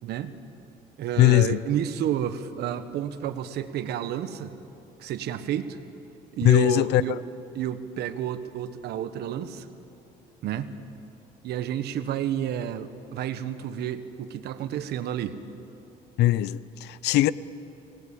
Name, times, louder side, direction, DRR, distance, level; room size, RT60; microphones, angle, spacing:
voice 1, 0.0-0.3 1.0-4.5 5.0-5.8 6.4-7.2 7.5-9.7 10.4-10.7 11.4-15.4, right 10 dB, 75° right, 1.4 m, -30 dB
voice 2, 1.2-1.6 6.4-7.0 16.2-17.3, left 16 dB, 80° left, 0.7 m, -20 dB
26.0 x 18.5 x 8.5 m
cardioid pair, 110°, 17 cm